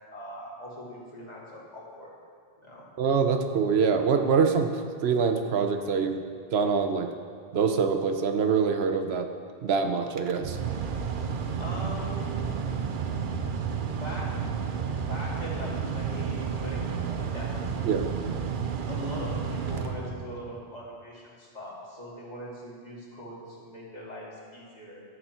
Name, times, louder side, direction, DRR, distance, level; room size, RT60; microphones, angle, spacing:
voice 1, 0.1-2.1 2.6-2.9 11.6-12.4 13.8-14.3 15.1-17.5 18.9-25.0, equal, 40° left, -5 dB, 2.3 m, -41 dB
voice 2, 3.0-4.7 5.0-6.2 6.5-7.1 7.5-9.3 9.6-10.6 17.8-18.1, right 5 dB, 80° right, 6 dB, 1.0 m, -24 dB
Mechanical fan, 10.1-20.6, right 6 dB, 60° right, 0.8 m, -31 dB
12.5 x 6.9 x 4.4 m, 2.2 s
omnidirectional pair, 1.0 m